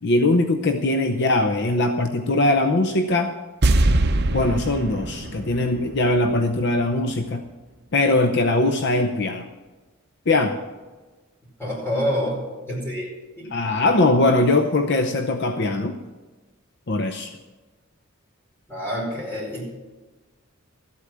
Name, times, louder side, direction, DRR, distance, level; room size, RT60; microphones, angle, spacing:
voice 1, 0.0-3.3 4.3-7.4 7.9-9.5 10.3-10.5 13.5-15.9 16.9-17.3, left 2 dB, 55° left, 7 dB, 0.7 m, -21 dB
sound 1, 3.6-6.8 7.1-7.2, right 2 dB, 55° right, 0.8 m, -23 dB
voice 2, 11.6-13.1 13.4-13.7 18.7-19.6, equal, 10° left, -4 dB, 4.9 m, -27 dB
14.0 x 8.4 x 7.4 m, 1.3 s
head